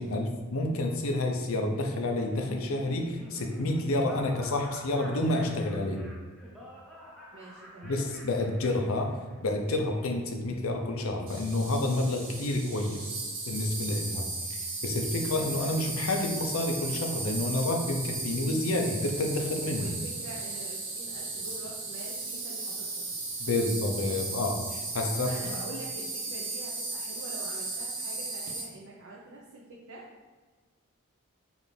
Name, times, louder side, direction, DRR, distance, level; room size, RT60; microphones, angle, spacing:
voice 1, 0.0-6.1 7.8-9.1 9.4-13.1 13.5-19.9 23.4-25.5, left 2 dB, 80° left, 3 dB, 0.6 m, -29 dB
Laughter, 2.1-9.6, equal, ahead, 0.4 m, -49 dB
voice 2, 7.3-8.1 19.7-23.2 25.2-30.1, right 2 dB, 70° right, -4 dB, 0.6 m, -45 dB
Insect, 11.3-28.6, right 3 dB, 40° right, 0.8 m, -36 dB
4.8 x 2.6 x 3.3 m, 1.3 s
head